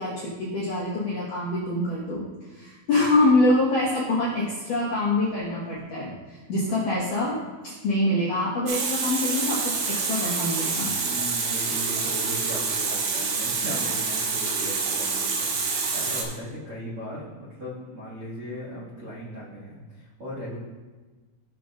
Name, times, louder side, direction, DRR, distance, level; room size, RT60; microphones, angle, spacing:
voice 1, 0.0-2.3 2.5-10.9, left 2 dB, 75° left, -7 dB, 1.9 m, -25 dB
Water tap faucet, 8.7-16.2, right 4 dB, 70° right, 3.1 m, -27 dB
voice 2, 11.0-20.6, equal, 85° right, -7 dB, 1.2 m, -38 dB
16.0 x 6.4 x 2.4 m, 1.3 s
omnidirectional pair, 5.8 m